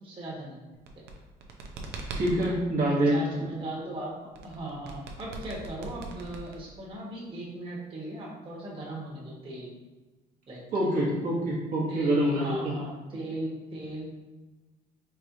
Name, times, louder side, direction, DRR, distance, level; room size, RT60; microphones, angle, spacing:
voice 1, 0.0-0.6 2.9-9.7 10.5-10.6 11.9-14.1, right 1 dB, 30° right, -4 dB, 1.3 m, -38 dB
sound 1, 0.7-2.5 4.3-6.9, right 3 dB, 75° right, 0.6 m, -40 dB
voice 2, 2.1-3.2 10.7-12.7, right 1 dB, 50° right, -6 dB, 1.2 m, -26 dB
4.4 x 3.2 x 2.6 m, 1.2 s
cardioid pair, 110°, 17 cm